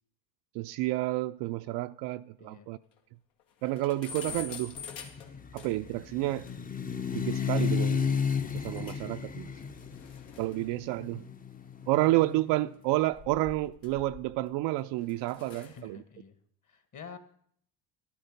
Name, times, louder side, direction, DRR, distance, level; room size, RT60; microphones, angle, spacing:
voice 1, 0.5-2.8 3.6-4.8 5.5-6.5 7.1-8.2 8.5-9.5 10.4-11.3 11.9-16.0, right 17 dB, 60° right, 0.5 m, -30 dB
sound 1, 1.7-1.8 2.1-2.2 2.5-2.6 3.0-3.1 3.4-6.0 6.5-6.6 8.4-9.2 9.4-12.1 12.9-14.5 15.0-15.8, left 6 dB, 80° left, 2.4 m, -47 dB
sound 2, 4.5-12.5, left 7 dB, 20° left, 0.7 m, -33 dB
voice 2, 9.4-9.8 10.1-10.4 15.6-16.4 16.6-17.2, left 6 dB, 40° left, 1.8 m, -49 dB
12.0 x 11.5 x 5.2 m
supercardioid pair, 95°, 48 cm